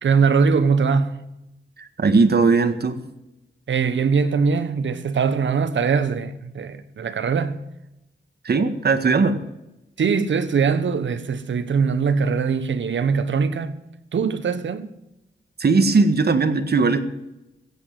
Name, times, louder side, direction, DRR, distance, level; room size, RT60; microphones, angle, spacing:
voice 1, 0.0-1.3 3.7-7.6 10.0-13.8 14.1-14.9, right 5 dB, 80° right, 1.3 m, -21 dB
voice 2, 1.8-3.0 8.4-9.4 15.6-17.0, right 4 dB, 60° right, 1.8 m, -18 dB
15.5 x 8.3 x 9.4 m
cardioid pair, 65°, 19 cm